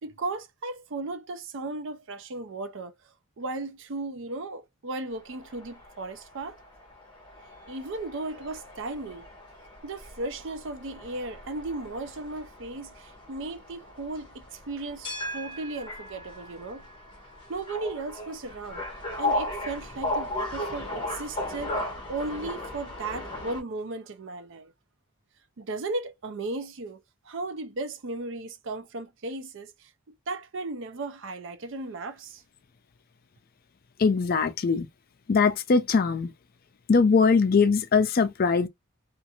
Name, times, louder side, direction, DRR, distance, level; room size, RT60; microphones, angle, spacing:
voice 1, 0.0-2.9 3.4-6.6 7.7-9.3 9.8-16.9 17.5-18.9 19.2-24.7 25.6-29.9 30.3-32.4, right 2 dB, 60° right, 0.5 m, -36 dB
sound 1, 5.3-23.6, left 1 dB, 20° left, 0.8 m, -36 dB
voice 2, 34.0-34.9 35.3-36.3 36.9-38.7, left 5 dB, 45° left, 0.4 m, -21 dB
2.5 x 2.5 x 2.8 m
head